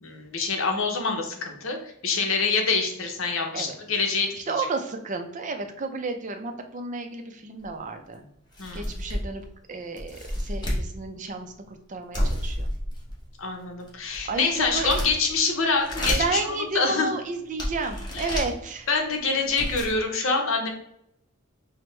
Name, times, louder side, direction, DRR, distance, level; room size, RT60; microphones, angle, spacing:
voice 1, 0.0-4.7 8.6-8.9 13.4-16.4 16.7-17.1 18.1-18.4 18.9-20.7, left 4 dB, 70° left, 3 dB, 0.8 m, -26 dB
voice 2, 4.3-8.3 8.7-9.4 9.7-12.7 14.3-14.9 16.2-18.9, right 3 dB, 35° right, 6 dB, 0.5 m, -32 dB
sound 1, 7.6-7.7 8.1-8.2 8.5-9.4 10.0-10.9 12.1-13.2 13.8-15.3 15.7-16.4 17.0-17.1 17.6-18.5 19.2-19.3 19.4-19.9, equal, 20° left, 1.1 m, -30 dB
5.9 x 2.1 x 3.2 m, 0.75 s
head